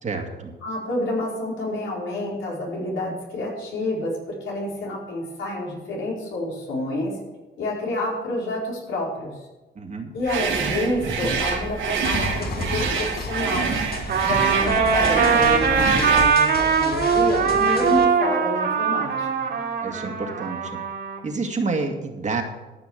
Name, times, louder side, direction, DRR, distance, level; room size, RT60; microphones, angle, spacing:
voice 1, 0.0-0.5 9.8-10.1 19.8-20.8 21.2-22.4, right 3 dB, 35° right, 3 dB, 2.2 m, -28 dB
voice 2, 0.6-7.1 7.6-9.3 10.1-13.7 14.2-19.6, left 1 dB, 80° left, -3 dB, 4.7 m, -28 dB
sound 1, 10.2-16.4, right 5 dB, 75° right, 2.9 m, -26 dB
sound 2, 12.0-18.0, left 2 dB, 50° left, 2.3 m, -33 dB
Trumpet, 14.1-21.2, right 6 dB, 55° right, 2.7 m, -21 dB
14.0 x 6.0 x 8.1 m, 1.1 s
cardioid pair, 90°, 20 cm